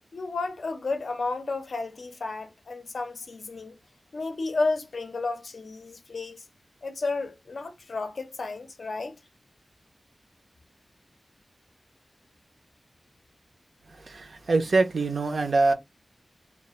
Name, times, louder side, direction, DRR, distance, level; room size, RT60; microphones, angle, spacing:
voice 1, 0.1-3.8 4.1-6.4 6.8-9.2, left 3 dB, 70° left, 0.5 m, -32 dB
voice 2, 13.9-15.7, right 3 dB, 70° right, 0.4 m, -24 dB
2.3 x 2.2 x 2.8 m
wide cardioid pair, 95°, 0 cm